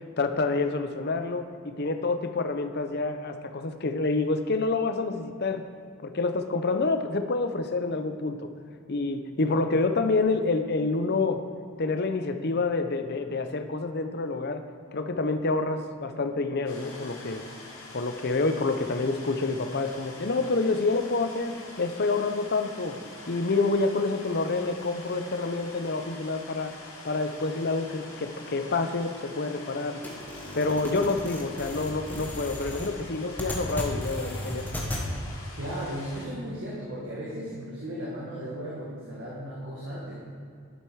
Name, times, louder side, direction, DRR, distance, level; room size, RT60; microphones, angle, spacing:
voice 1, 0.0-1.5 1.8-5.6 6.0-8.5 8.9-11.4 11.8-14.6 14.9-17.4 17.9-23.0 23.3-26.7 27.0-30.0 30.5-34.7, left 3 dB, 50° left, 8 dB, 0.6 m, -28 dB
sound 1, 16.7-36.3, left 2 dB, 70° left, 2.2 m, -45 dB
sound 2, 30.0-35.0, left 1 dB, 10° left, 1.2 m, -35 dB
voice 2, 35.6-40.2, equal, 55° right, -6 dB, 1.9 m, -36 dB
11.0 x 7.8 x 4.8 m, 2.4 s
head